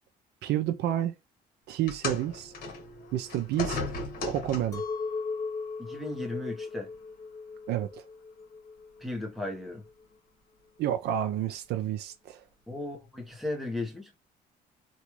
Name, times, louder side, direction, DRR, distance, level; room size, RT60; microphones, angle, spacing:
voice 1, 0.4-1.1 1.7-2.5 3.1-3.8 4.3-4.8 7.7-8.0 10.8-12.4, right 12 dB, 75° right, 0.5 m, -30 dB
sound 1, 1.9-4.9 5.9-6.1 6.9-7.0, left 3 dB, 60° left, 1.2 m, -36 dB
Chink clink, 4.7-9.9, left 4 dB, 20° left, 0.5 m, -37 dB
voice 2, 5.8-6.9 9.0-9.8 12.7-14.1, left 2 dB, ahead, 1.0 m, -36 dB
3.0 x 2.4 x 3.0 m
cardioid pair, 110°, 17 cm